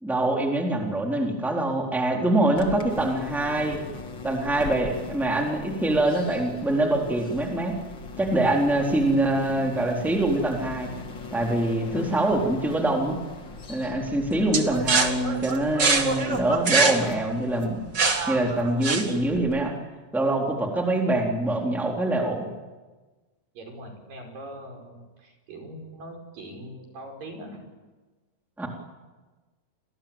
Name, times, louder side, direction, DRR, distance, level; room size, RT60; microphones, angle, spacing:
voice 1, 0.0-3.8 4.2-7.7 8.2-10.9 11.3-13.2 13.7-17.9 18.3-19.7 20.1-22.5 28.6-28.7, right 1 dB, ahead, 1 dB, 3.4 m, -24 dB
sound 1, 2.6-19.8, left 4 dB, 35° left, 2.7 m, -40 dB
sound 2, 14.5-19.4, right 4 dB, 35° right, 2.4 m, -24 dB
voice 2, 23.6-27.7, right 1 dB, 80° right, 3 dB, 7.0 m, -41 dB
30.0 x 21.0 x 9.0 m, 1.3 s
omnidirectional pair, 3.9 m